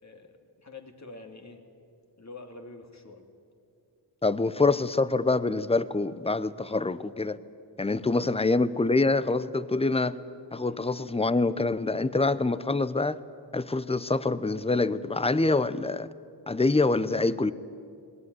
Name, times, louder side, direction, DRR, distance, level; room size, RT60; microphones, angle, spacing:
voice 1, 0.0-1.6 2.2-3.2 7.9-8.1 10.6-10.8, left 3 dB, 40° left, 4 dB, 2.6 m, -46 dB
voice 2, 4.2-7.4 7.8-10.2 10.5-13.2 13.5-16.1 16.5-17.5, left 3 dB, 15° left, 16 dB, 0.7 m, -25 dB
19.5 x 19.5 x 9.6 m, 2.4 s
wide cardioid pair, 80°, 43 cm